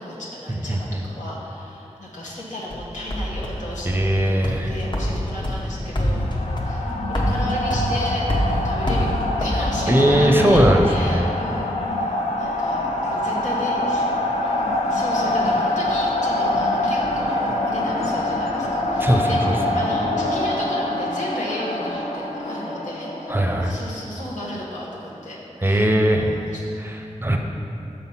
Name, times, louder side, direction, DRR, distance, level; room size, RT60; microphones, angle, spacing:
voice 1, 0.0-6.2 6.6-12.1 12.4-14.0 14.3-23.3 23.6-25.9 26.1-26.7, left 1 dB, 85° left, -6 dB, 1.4 m, -34 dB
voice 2, 0.7-1.0 3.8-4.8 9.9-11.3 19.0-19.8 23.3-23.8 25.6-26.4 26.8-27.4, equal, 15° right, 1 dB, 0.6 m, -19 dB
sound 1, 2.7-11.5, equal, 40° left, 0.9 m, -26 dB
sound 2, 6.1-23.8, left 1 dB, 65° left, 0.7 m, -25 dB
6.5 x 4.1 x 5.6 m, 2.9 s
wide cardioid pair, 55°, 12 cm